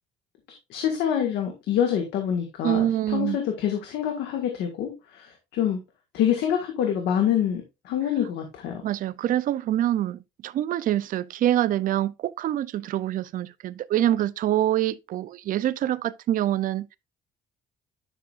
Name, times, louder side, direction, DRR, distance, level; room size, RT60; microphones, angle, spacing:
voice 1, 0.7-5.8 6.1-8.8, left 9 dB, 80° left, 1.8 m, -26 dB
voice 2, 2.6-3.4 8.8-17.0, right 12 dB, 55° right, 0.5 m, -25 dB
11.0 x 6.0 x 2.5 m
cardioid pair, 110°, 17 cm